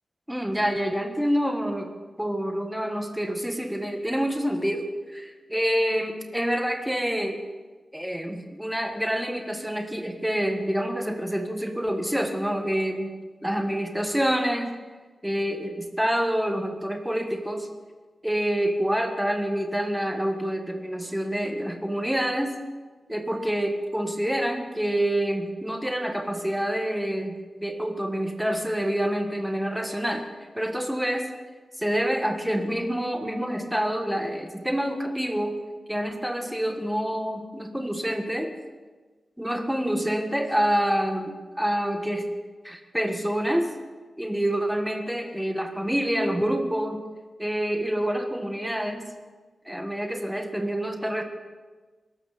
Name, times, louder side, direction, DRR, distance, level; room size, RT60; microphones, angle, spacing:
voice 1, 0.3-1.9 2.2-7.4 7.9-13.1 13.4-14.7 15.2-17.7 18.2-22.6 23.1-30.2 30.5-31.3 31.8-35.6 35.9-38.5 39.4-42.3 42.6-43.7 44.2-47.0 47.4-49.0 49.6-51.2, equal, 5° right, 4 dB, 1.4 m, -27 dB
22.0 x 12.5 x 4.1 m, 1.3 s
wide cardioid pair, 165°, 0 cm